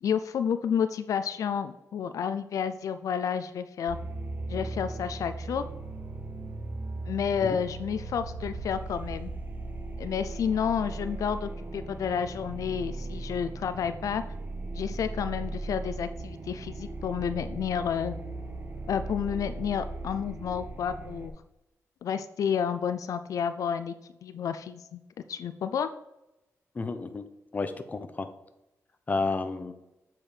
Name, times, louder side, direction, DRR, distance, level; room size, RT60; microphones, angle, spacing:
voice 1, 0.0-4.0 4.5-5.6 7.1-9.3 10.0-14.2 14.7-18.1 18.9-21.3 22.0-23.9 24.2-25.0 25.3-25.9, left 7 dB, 80° left, 11 dB, 0.4 m, -30 dB
sound 1, 3.9-21.3, right 2 dB, 30° right, 0.8 m, -38 dB
voice 2, 26.7-27.2 27.5-28.3 29.1-29.7, left 3 dB, 30° left, 8 dB, 0.6 m, -31 dB
7.4 x 4.5 x 5.0 m, 0.91 s
wide cardioid pair, 135°, 6 cm